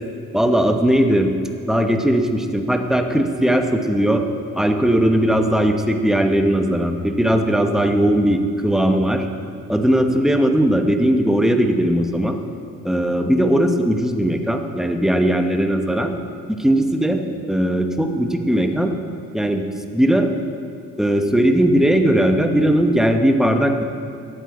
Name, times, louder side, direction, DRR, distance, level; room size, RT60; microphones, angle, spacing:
voice 1, 0.3-1.3 1.7-4.2 4.5-9.3 9.7-12.4 12.8-16.1 16.5-17.2 17.5-18.9 19.3-19.6 19.9-20.3 21.0-23.8, right 1 dB, ahead, 5 dB, 0.9 m, -18 dB
12.0 x 8.1 x 4.8 m, 2.3 s
cardioid pair, 90°, 30 cm